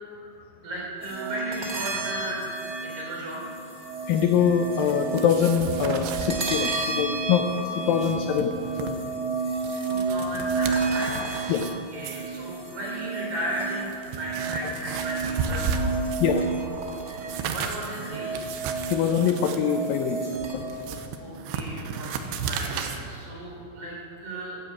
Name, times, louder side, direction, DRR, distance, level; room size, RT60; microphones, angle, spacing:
voice 1, 0.6-2.5 2.8-3.4 9.9-11.2 11.5-11.6 11.9-16.1 17.5-18.5 21.2-24.6, right 1 dB, 45° right, -4 dB, 4.7 m, -35 dB
sound 1, 1.0-20.6, right 4 dB, 65° right, 0.6 m, -31 dB
voice 2, 4.1-8.5 8.8-9.0 11.5-11.7 14.6-14.7 16.2-16.4 18.9-20.7, left 8 dB, 85° left, 6 dB, 2.0 m, -24 dB
sound 2, 4.8-6.3 6.7-7.1 7.3-7.4 7.8-8.9 9.4-11.7 12.0-12.4 13.2-13.3 13.7-16.4 16.8-23.0, right 5 dB, 85° right, 3.1 m, -34 dB
14.5 x 10.5 x 8.3 m, 2.8 s
omnidirectional pair, 5.0 m